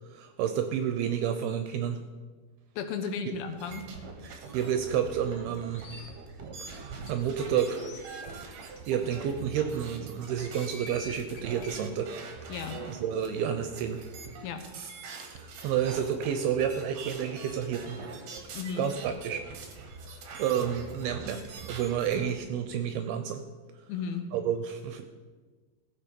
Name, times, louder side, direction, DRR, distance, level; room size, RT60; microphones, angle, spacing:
voice 1, 0.1-2.0 4.2-6.0 6.6-8.0 8.4-12.1 12.9-14.1 15.3-18.0 18.8-19.4 20.4-23.4 24.3-25.0, right 8 dB, 80° right, 8 dB, 2.3 m, -30 dB
voice 2, 2.8-3.8 12.5-12.8 14.4-14.6 18.5-18.9 23.9-24.3, left 6 dB, 75° left, 7 dB, 2.4 m, -34 dB
sound 1, 3.4-22.3, right 4 dB, 65° right, 1.8 m, -44 dB
sound 2, 5.6-6.0 6.7-6.8 7.0-7.1 7.6-8.0 8.7-8.8 9.1-9.2 10.2-11.7, left 2 dB, 35° left, 2.7 m, -47 dB
16.5 x 7.0 x 5.2 m, 1.4 s
omnidirectional pair, 5.0 m